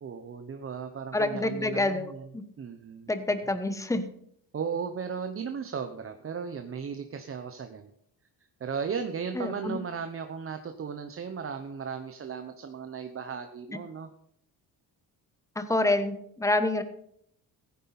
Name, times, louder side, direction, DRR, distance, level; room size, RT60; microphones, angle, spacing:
voice 1, 0.0-2.3 2.6-3.4 4.5-7.9 8.6-14.1, right 6 dB, 35° right, 7 dB, 0.9 m, -36 dB
voice 2, 1.1-2.4 3.1-4.0 9.3-9.8 15.6-16.8, left 2 dB, 10° left, 10 dB, 1.1 m, -27 dB
15.5 x 9.7 x 4.2 m, 0.70 s
cardioid pair, 115°, 37 cm